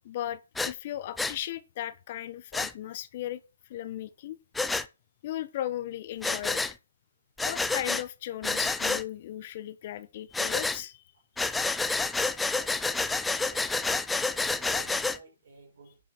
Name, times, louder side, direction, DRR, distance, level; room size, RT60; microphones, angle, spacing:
voice 1, 0.0-3.4 3.7-4.4 5.2-6.6 7.5-11.0 11.4-11.5, left 12 dB, 45° left, 0.9 m, -36 dB
Breathing, 0.6-0.7 1.2-1.4 2.5-2.7 4.6-4.9 6.2-6.7 7.4-8.0 8.4-9.0 10.3-10.8 11.4-15.2, left 3 dB, 5° left, 0.5 m, -29 dB
voice 2, 12.5-13.7 14.3-16.0, right 4 dB, 55° right, 5.3 m, -54 dB
10.5 x 6.2 x 5.0 m
hypercardioid pair, 155°, 0 cm